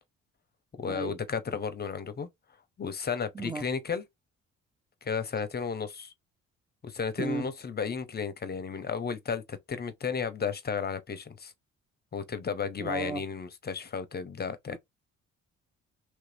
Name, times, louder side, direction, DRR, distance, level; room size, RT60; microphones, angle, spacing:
voice 1, 0.8-2.3 2.8-4.0 5.0-6.1 6.8-11.5 12.1-14.8, left 6 dB, 35° left, 0.6 m, -33 dB
voice 2, 7.2-7.5 12.8-13.2 14.7-14.8, right 3 dB, 15° right, 0.5 m, -34 dB
3.1 x 2.4 x 3.2 m
cardioid pair, 90°, 30 cm